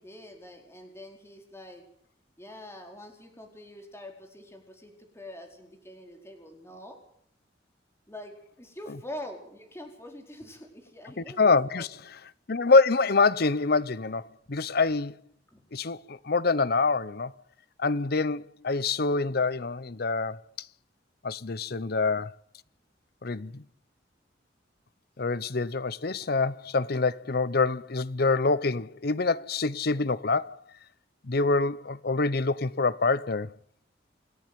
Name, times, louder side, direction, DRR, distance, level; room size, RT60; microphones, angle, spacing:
voice 1, 0.0-1.8 2.4-7.0 8.1-11.9 15.5-15.6, left 1 dB, 15° left, 4.7 m, -45 dB
voice 2, 11.2-11.9 12.5-15.1 15.7-17.3 17.8-20.4 21.2-22.3 23.2-23.6 25.2-30.6 31.2-33.5, left 3 dB, 55° left, 0.8 m, -26 dB
27.5 x 11.0 x 9.3 m
head